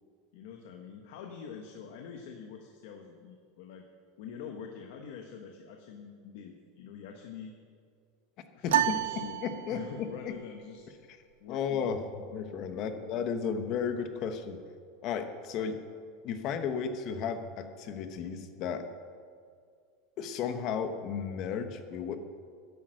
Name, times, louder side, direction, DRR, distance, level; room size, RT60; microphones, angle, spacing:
voice 1, 0.3-3.9 4.2-7.5 8.5-10.8 11.4-11.9 12.7-13.2, left 7 dB, 60° left, 3 dB, 1.2 m, -45 dB
sound 1, 8.7-10.2, right 13 dB, 90° right, 0.4 m, -30 dB
voice 2, 9.1-10.1 11.1-11.2 11.5-12.0 12.3-14.6 15.0-15.8 16.2-18.8 20.2-22.2, left 7 dB, 35° left, 8 dB, 1.0 m, -34 dB
12.0 x 10.5 x 6.5 m, 2.2 s
supercardioid pair, 170°, 0 cm